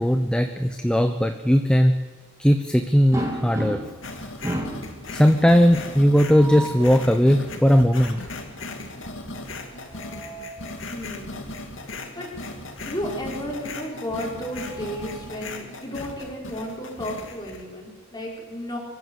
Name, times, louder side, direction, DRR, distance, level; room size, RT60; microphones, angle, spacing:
voice 1, 0.0-2.0 2.4-3.8 5.1-8.2, equal, 5° left, 7 dB, 0.8 m, -18 dB
sound 1, 3.1-4.1 4.4-4.9 6.1-6.9 9.5-10.6 12.0-12.2 12.5-12.6 14.2-15.4, right 1 dB, 15° right, 3.3 m, -33 dB
sound 2, 4.0-17.6, left 2 dB, 65° left, 2.7 m, -37 dB
voice 2, 10.9-11.5 12.2-12.3 12.8-18.8, equal, 20° left, -2 dB, 5.2 m, -33 dB
24.5 x 14.0 x 8.2 m, 1.5 s
head